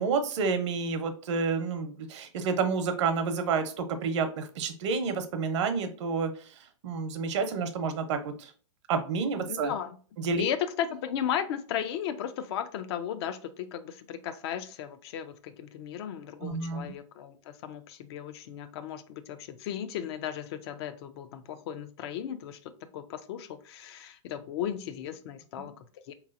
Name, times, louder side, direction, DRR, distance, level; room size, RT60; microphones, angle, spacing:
voice 1, 0.0-6.3 6.8-8.5 8.9-9.7 10.2-10.5 16.4-16.9 25.6-25.7, right 5 dB, 60° right, 0.7 m, -29 dB
voice 2, 9.5-10.0 10.4-26.1, left 9 dB, 55° left, 0.4 m, -35 dB
3.8 x 3.0 x 2.4 m
hypercardioid pair, 125°, 17 cm